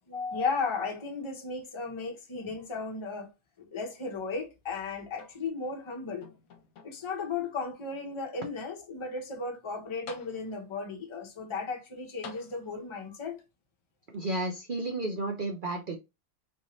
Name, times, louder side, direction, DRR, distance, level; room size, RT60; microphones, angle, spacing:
voice 1, 0.1-3.3 3.6-6.3 6.8-13.4, left 4 dB, 30° left, 0.5 m, -35 dB
sound 1, 5.1-5.8 6.2-7.2 7.9-8.0 9.6-9.7 10.1-10.8 12.2-13.1 14.1-14.2, left 5 dB, 65° left, 1.1 m, -49 dB
voice 2, 14.1-16.0, right 2 dB, 60° right, 0.5 m, -32 dB
3.6 x 2.7 x 3.0 m
omnidirectional pair, 1.8 m